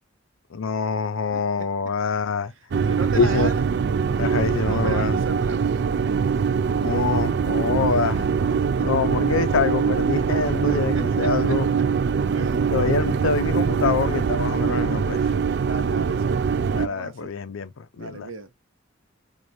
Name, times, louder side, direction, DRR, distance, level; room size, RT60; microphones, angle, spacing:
voice 1, 0.5-2.5 3.2-3.5 4.2-5.1 6.8-8.3 8.8-11.7 12.7-15.3 16.7-18.3, left 5 dB, 80° left, 0.5 m, -25 dB
sound 1, 2.7-16.9, right 6 dB, 55° right, 0.3 m, -23 dB
voice 2, 2.8-3.7 4.7-5.6 8.8-8.9 10.7-11.0 11.5-11.6 12.3-13.0 15.6-17.3 18.0-18.5, right 3 dB, 75° right, 1.1 m, -35 dB
4.7 x 2.6 x 2.6 m
head